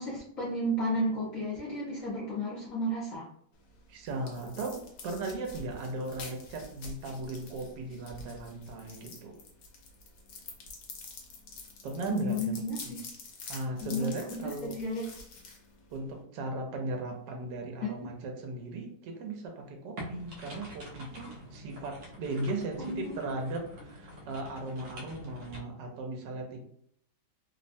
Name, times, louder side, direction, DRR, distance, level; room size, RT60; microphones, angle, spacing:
voice 1, 0.0-3.3 12.1-13.0 13.8-15.0 17.8-18.1 22.8-23.1, equal, 55° left, -7 dB, 1.1 m, -33 dB
sound 1, 3.5-16.2, left 3 dB, 85° left, 1.4 m, -48 dB
voice 2, 3.9-9.3 11.8-12.5 12.8-12.9 13.5-14.7 15.9-26.6, right 2 dB, 80° right, 3 dB, 1.2 m, -37 dB
sound 2, 20.0-25.6, equal, 60° right, 1.0 m, -46 dB
3.3 x 2.1 x 2.6 m, 0.68 s
omnidirectional pair, 1.9 m